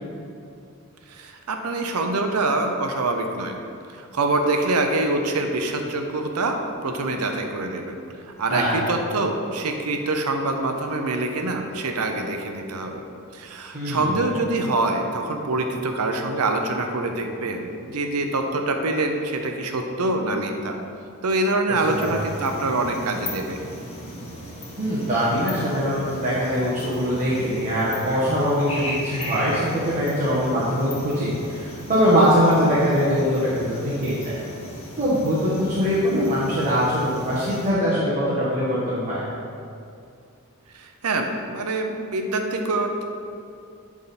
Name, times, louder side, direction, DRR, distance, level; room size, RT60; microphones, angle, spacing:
voice 1, 1.1-3.6 3.9-8.0 8.2-13.0 13.3-20.8 21.2-23.6 40.7-43.0, right 2 dB, 90° right, 4 dB, 0.7 m, -25 dB
voice 2, 13.7-14.1 22.0-22.2 24.8-34.4 35.0-39.2, equal, 35° right, -9 dB, 1.3 m, -22 dB
sound 1, 21.8-37.7, equal, 30° left, 1.4 m, -37 dB
10.5 x 3.7 x 4.2 m, 2.4 s
head